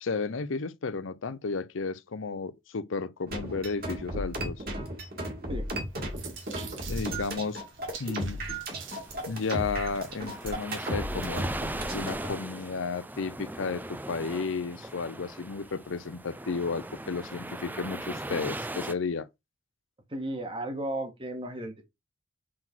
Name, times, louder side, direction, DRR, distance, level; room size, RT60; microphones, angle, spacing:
voice 1, 0.0-4.6 6.9-7.6 8.0-8.4 9.3-11.5 11.9-19.3, left 4 dB, 80° left, 0.6 m, -33 dB
sound 1, 3.3-12.3, right 1 dB, 50° right, 2.4 m, -35 dB
sound 2, 5.7-10.5, right 7 dB, 80° right, 1.8 m, -47 dB
sound 3, 8.7-18.9, right 1 dB, 10° right, 0.4 m, -39 dB
voice 2, 20.1-21.9, right 1 dB, 25° right, 1.5 m, -34 dB
7.5 x 4.0 x 4.4 m
head